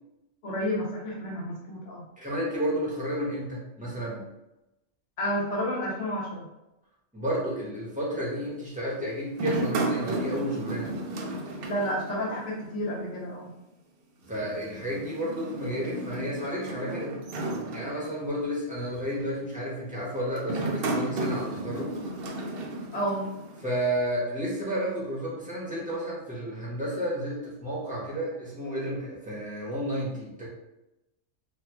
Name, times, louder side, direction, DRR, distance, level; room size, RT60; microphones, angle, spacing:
voice 1, 0.4-2.0 5.2-6.5 11.6-13.5 22.9-23.3, equal, 75° left, -4 dB, 1.0 m, -30 dB
voice 2, 2.2-4.2 7.1-10.9 14.2-17.1 17.7-22.0 23.6-30.5, equal, 5° right, -6 dB, 0.8 m, -31 dB
sound 1, 9.3-12.7 13.0-13.1 14.3-18.5 19.1-19.4 20.4-23.7, right 2 dB, 60° right, 0.6 m, -33 dB
3.0 x 2.3 x 3.3 m, 0.94 s
omnidirectional pair, 1.3 m